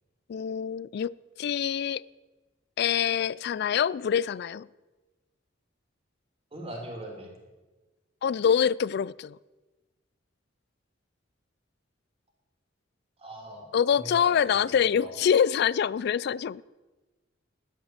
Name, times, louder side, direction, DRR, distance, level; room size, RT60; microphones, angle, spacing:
voice 1, 0.3-2.0 2.8-4.7 8.2-9.4 13.7-16.6, left 8 dB, 55° left, 0.3 m, -25 dB
voice 2, 6.5-7.3 13.2-15.1, right 1 dB, 30° right, 3.0 m, -41 dB
11.0 x 10.5 x 7.4 m
head